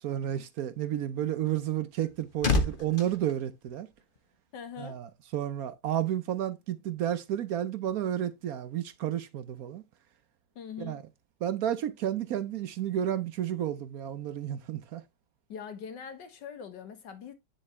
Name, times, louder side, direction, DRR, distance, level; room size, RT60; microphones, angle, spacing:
voice 1, 0.0-3.9 4.8-9.8 10.8-11.0 11.4-15.0, right 11 dB, 65° right, 0.9 m, -31 dB
sound 1, 1.7-4.4 4.6-4.9, left 3 dB, 35° left, 1.1 m, -32 dB
voice 2, 4.5-5.0 10.6-11.1 15.5-17.3, left 7 dB, 70° left, 1.9 m, -42 dB
10.0 x 4.3 x 3.2 m
omnidirectional pair, 2.0 m